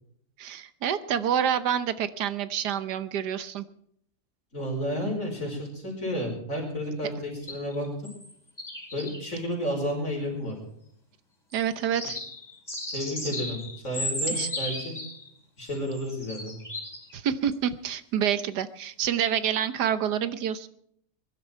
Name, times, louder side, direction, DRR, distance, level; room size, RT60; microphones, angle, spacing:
voice 1, 0.4-3.7 11.5-12.2 14.3-14.5 17.1-20.7, right 9 dB, 75° right, 13 dB, 1.5 m, -28 dB
voice 2, 4.5-7.9 8.9-10.6 12.9-13.6 13.8-14.9 15.6-16.6, equal, 50° left, -1 dB, 5.4 m, -31 dB
sound 1, 7.4-8.3 8.6-9.3 11.5-11.7 11.9-15.4 15.7-17.2 17.5-17.6, left 1 dB, 25° left, 5.5 m, -35 dB
22.0 x 11.5 x 4.5 m, 0.68 s
omnidirectional pair, 1.8 m